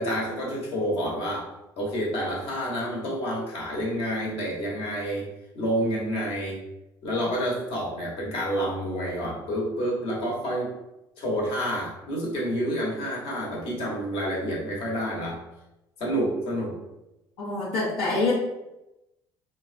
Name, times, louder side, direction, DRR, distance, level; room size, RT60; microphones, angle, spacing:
voice 1, 0.0-1.5 1.8-5.3 5.5-6.6 7.0-10.7 11.2-15.4 16.0-16.8, equal, 65° left, -3 dB, 1.1 m, -28 dB
voice 2, 17.4-18.3, left 3 dB, 85° left, -7 dB, 0.7 m, -25 dB
2.9 x 2.3 x 2.5 m, 0.93 s
supercardioid pair, 80°, 11 cm